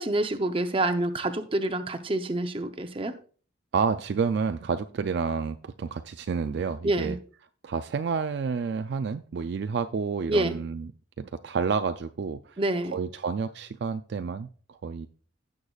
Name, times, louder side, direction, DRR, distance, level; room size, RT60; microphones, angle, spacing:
voice 1, 0.0-3.1 6.8-7.2 10.3-10.6 12.6-13.0, right 1 dB, 25° right, 8 dB, 0.7 m, -27 dB
voice 2, 3.7-7.2 7.6-10.9 11.2-12.6 12.9-15.1, right 5 dB, 55° right, 10 dB, 0.3 m, -29 dB
16.0 x 6.6 x 2.3 m, 0.41 s
head